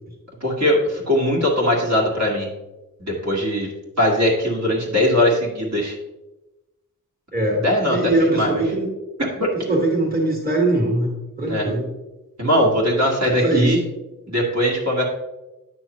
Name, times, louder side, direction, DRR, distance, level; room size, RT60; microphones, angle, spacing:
voice 1, 0.4-2.5 3.0-3.7 4.0-5.9 7.6-8.6 9.4-9.5 11.5-11.7 12.4-13.8 14.3-15.0, left 1 dB, 50° right, -4 dB, 1.9 m, -20 dB
voice 2, 7.3-7.6 7.9-8.9 9.7-11.1 11.4-11.9 13.2-13.7, right 2 dB, 25° right, -2 dB, 1.9 m, -21 dB
9.0 x 6.2 x 3.0 m, 1.0 s
wide cardioid pair, 90°, 35 cm